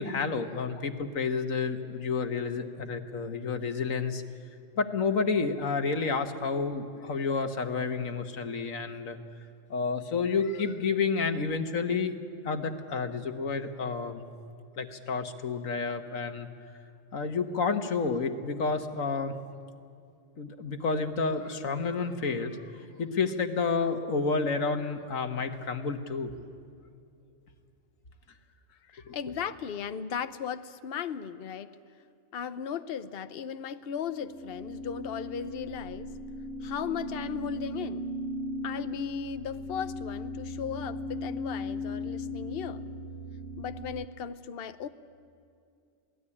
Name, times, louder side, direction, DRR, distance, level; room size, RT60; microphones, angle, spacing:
voice 1, 0.0-4.2 4.8-9.2 9.7-12.2 12.5-14.2 14.8-16.5 17.1-19.4 20.4-22.6 23.0-26.3 29.1-29.2, left 4 dB, 90° left, 7 dB, 1.8 m, -30 dB
voice 2, 28.9-31.7 32.3-36.1 36.6-38.1 38.6-42.8 43.6-44.9, left 7 dB, 50° left, 11 dB, 0.9 m, -36 dB
sound 1, 33.9-44.1, left 1 dB, 65° right, 1.2 m, -37 dB
26.5 x 18.0 x 9.9 m, 2.4 s
omnidirectional pair, 1.3 m